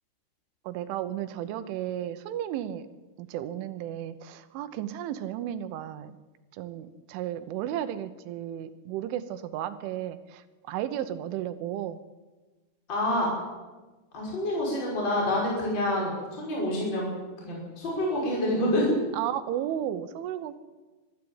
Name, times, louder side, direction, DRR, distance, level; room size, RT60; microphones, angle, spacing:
voice 1, 0.7-2.9 3.2-6.2 6.6-10.4 10.7-12.0 19.1-20.6, right 11 dB, 80° right, 11 dB, 3.3 m, -33 dB
voice 2, 12.9-13.3 14.1-17.1 17.4-18.9, left 1 dB, 20° left, -4 dB, 5.9 m, -27 dB
22.0 x 14.0 x 8.8 m, 1.2 s
omnidirectional pair, 5.8 m